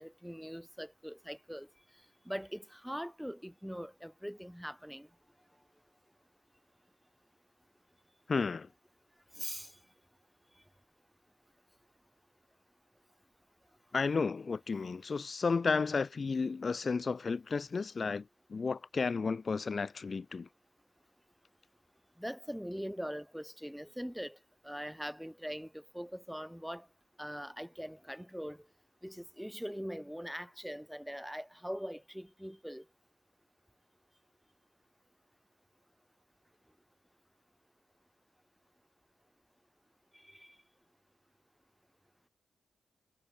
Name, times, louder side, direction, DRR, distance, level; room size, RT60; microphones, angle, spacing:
voice 1, 0.0-1.7 2.2-5.1 9.4-9.7 22.2-24.4 24.6-26.9 27.2-28.6 29.0-32.8 40.2-40.5, equal, ahead, 1.6 m, -42 dB
voice 2, 8.3-8.7 13.9-20.5, left 4 dB, 45° left, 0.4 m, -33 dB
cardioid pair, 75°, 0 cm